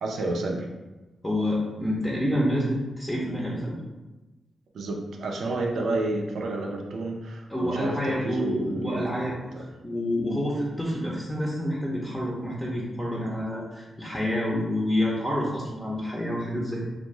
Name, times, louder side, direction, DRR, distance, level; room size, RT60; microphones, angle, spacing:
voice 1, 0.0-0.7 4.7-9.6, right 2 dB, 75° right, 0 dB, 0.4 m, -30 dB
voice 2, 1.2-3.8 7.5-9.4 9.8-16.8, equal, 15° left, -4 dB, 0.6 m, -28 dB
2.5 x 2.1 x 3.2 m, 1.1 s
supercardioid pair, 50°, 0 cm